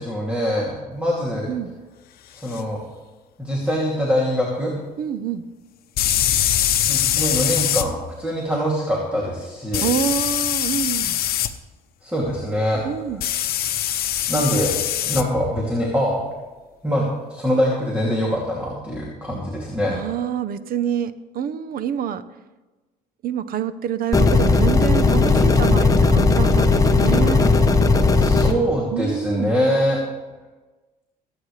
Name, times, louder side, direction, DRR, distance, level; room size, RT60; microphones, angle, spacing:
voice 1, 0.0-1.5 2.4-2.8 3.4-4.7 6.8-9.9 12.0-12.8 14.3-14.8 15.0-16.3 16.8-20.0 28.2-30.0, equal, 10° right, -3 dB, 2.7 m, -23 dB
sound 1, 2.5-2.6 6.0-7.9 9.7-11.5 13.2-15.2, left 11 dB, 65° left, 0.9 m, -22 dB
voice 2, 5.0-5.4 9.8-11.2 12.8-13.2 19.9-22.2 23.2-27.5 28.9-29.6, right 8 dB, 60° right, 13 dB, 0.8 m, -26 dB
sound 2, 24.1-28.5, left 3 dB, 20° left, 1.0 m, -16 dB
22.5 x 9.2 x 3.3 m, 1.2 s
cardioid pair, 110°, 17 cm